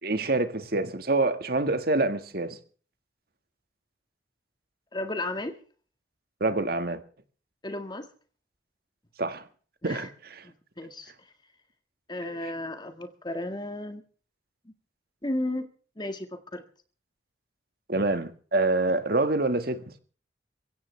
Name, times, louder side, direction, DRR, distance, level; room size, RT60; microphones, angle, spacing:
voice 1, 0.0-2.6 6.4-7.0 9.2-9.5 9.8-10.4 12.2-12.4 17.9-19.8, right 2 dB, 55° right, 1.8 m, -26 dB
voice 2, 4.9-5.6 7.6-8.1 9.8-10.1 10.4-11.1 12.1-14.0 14.7-14.8 15.2-15.7 16.0-16.6, left 1 dB, 25° left, 1.8 m, -34 dB
24.0 x 16.0 x 3.4 m
head